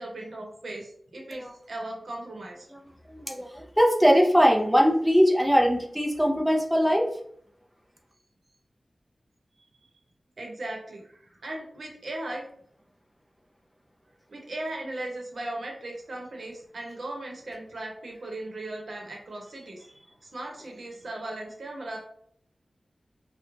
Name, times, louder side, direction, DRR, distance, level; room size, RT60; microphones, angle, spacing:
voice 1, 0.0-2.7 9.6-9.9 10.4-12.5 14.3-19.8 20.2-22.0, right 1 dB, 75° right, 0 dB, 0.7 m, -37 dB
voice 2, 3.1-7.1, equal, ahead, 0 dB, 0.4 m, -21 dB
2.4 x 2.1 x 3.0 m, 0.63 s
wide cardioid pair, 100°, 0 cm